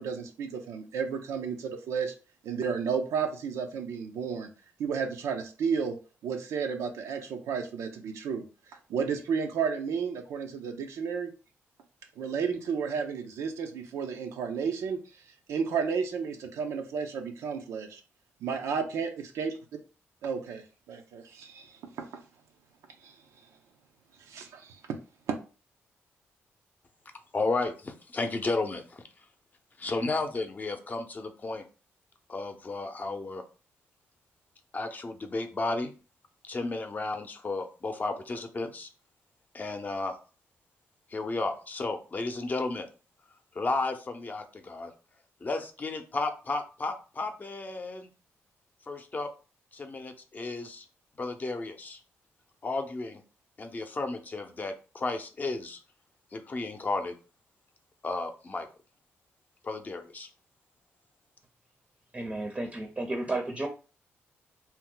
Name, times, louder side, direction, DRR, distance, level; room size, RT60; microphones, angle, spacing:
voice 1, 0.0-2.1 2.4-4.5 4.8-6.0 6.2-8.4 8.9-11.3 12.2-15.0 15.5-18.0 18.4-19.5 20.2-22.1 23.0-23.1 24.3-25.0 25.3-25.4, right 6 dB, 85° right, 4 dB, 0.5 m, -32 dB
voice 2, 27.3-29.0 29.8-31.6 32.3-33.4 34.7-35.9 36.4-38.9 39.5-40.2 41.1-42.9 43.5-44.9 45.4-48.1 48.9-49.3 49.7-50.9 51.2-52.0 52.6-53.2 53.6-55.8 56.3-57.1 58.0-58.7 59.6-60.3, left 3 dB, 35° left, 6 dB, 0.6 m, -33 dB
voice 3, 62.1-63.7, right 2 dB, 25° right, 3 dB, 0.6 m, -32 dB
2.8 x 2.1 x 3.7 m, 0.34 s
cardioid pair, 70°, 5 cm